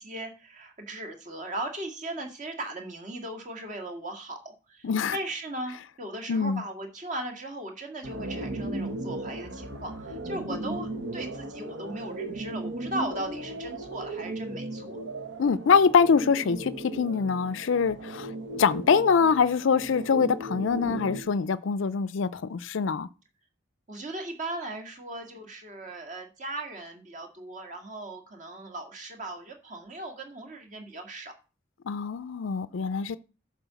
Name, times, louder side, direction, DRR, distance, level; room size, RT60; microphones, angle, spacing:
voice 1, 0.0-15.0 23.9-31.3, right 1 dB, 40° right, 2.1 m, -38 dB
voice 2, 4.8-5.2 6.3-6.6 15.4-18.3 18.6-23.1 31.9-33.2, left 5 dB, 70° left, 0.4 m, -24 dB
sound 1, 8.0-21.2, right 1 dB, 60° right, 1.3 m, -36 dB
11.0 x 4.4 x 6.9 m
head